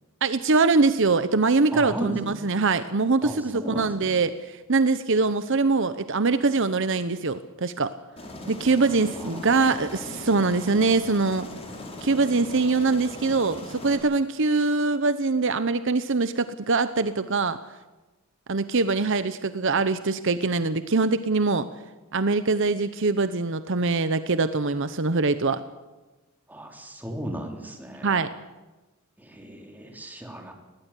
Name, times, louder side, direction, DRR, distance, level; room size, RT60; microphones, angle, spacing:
voice 1, 0.2-7.9 8.5-11.5 12.0-17.6 18.5-21.7 22.1-25.6 28.0-28.3, right 3 dB, 60° right, 12 dB, 0.9 m, -23 dB
voice 2, 1.7-2.4 3.2-4.2 9.2-9.8 26.5-28.2 29.2-30.5, right 1 dB, 10° right, 3 dB, 3.4 m, -36 dB
Aircraft, 8.2-14.0, left 2 dB, 25° left, 4.5 m, -39 dB
20.5 x 17.5 x 9.9 m, 1.2 s
head